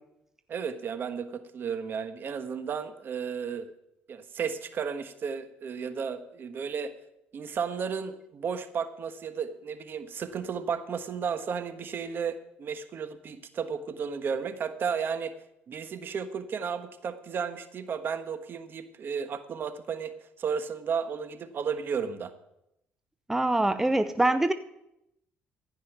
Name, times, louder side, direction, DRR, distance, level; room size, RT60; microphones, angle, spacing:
voice 1, 0.5-3.7 4.1-6.9 7.3-15.3 15.7-20.1 20.4-22.3, right 6 dB, 50° right, 9 dB, 1.3 m, -33 dB
voice 2, 23.3-24.5, right 2 dB, 10° right, 10 dB, 0.7 m, -24 dB
15.0 x 5.5 x 9.2 m, 0.83 s
supercardioid pair, 80°, 5 cm